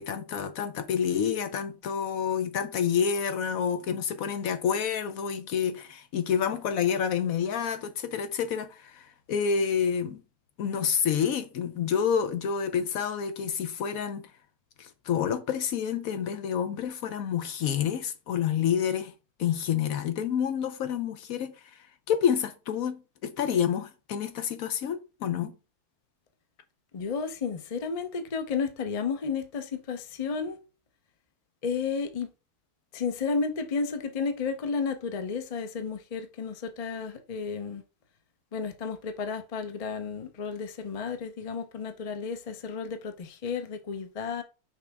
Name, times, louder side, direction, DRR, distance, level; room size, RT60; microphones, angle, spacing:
voice 1, 0.0-10.2 10.6-14.3 14.8-19.1 19.4-21.8 22.1-25.5, left 7 dB, 70° left, 1.0 m, -28 dB
voice 2, 26.9-30.6 31.6-32.3 32.9-37.8 38.5-44.4, left 5 dB, 35° left, 0.6 m, -32 dB
5.9 x 5.0 x 3.5 m
omnidirectional pair, 1.6 m